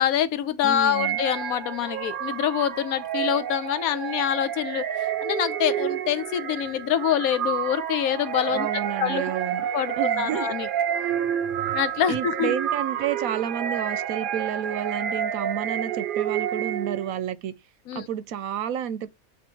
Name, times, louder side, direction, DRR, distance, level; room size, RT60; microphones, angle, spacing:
voice 1, 0.0-8.7 9.0-9.2 9.7-10.7 11.7-12.5 17.9-18.1, left 10 dB, 90° left, 1.2 m, -25 dB
voice 2, 0.6-1.2 8.5-9.7 10.0-10.5 12.1-17.5 17.9-19.1, right 9 dB, 90° right, 1.1 m, -30 dB
sound 1, 0.9-17.1, right 9 dB, 65° right, 0.5 m, -29 dB
7.4 x 3.1 x 4.4 m
omnidirectional pair, 1.4 m